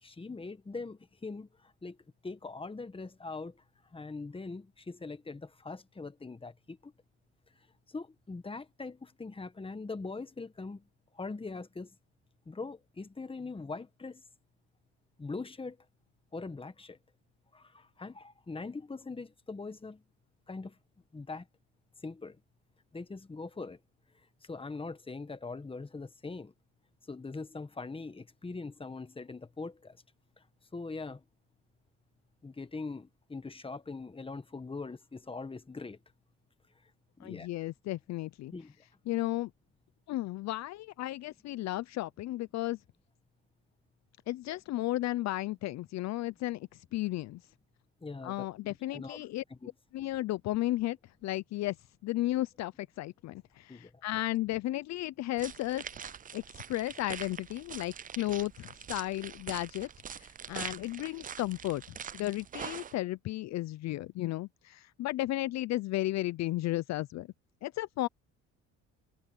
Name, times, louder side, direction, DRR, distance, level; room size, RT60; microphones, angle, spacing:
voice 1, 0.0-2.0 2.2-3.6 3.9-6.9 7.9-10.8 11.1-11.9 12.4-14.2 15.2-15.8 16.3-17.0 17.5-20.0 20.5-20.8 21.1-21.5 22.0-22.4 22.9-23.8 24.4-26.5 27.1-30.0 30.7-31.2 32.4-36.0 37.2-37.5 38.5-38.7 48.0-49.7 53.7-53.9, left 3 dB, 15° left, 1.6 m, -42 dB
voice 2, 37.2-38.5 39.1-39.5 40.1-42.8 44.3-47.4 48.2-49.4 49.9-51.0 51.2-51.8 52.0-56.4 56.7-67.3 67.6-68.1, left 16 dB, 60° left, 0.6 m, -34 dB
sound 1, 55.4-62.9, right 8 dB, 25° right, 0.5 m, -44 dB
supercardioid pair, 85°, 30 cm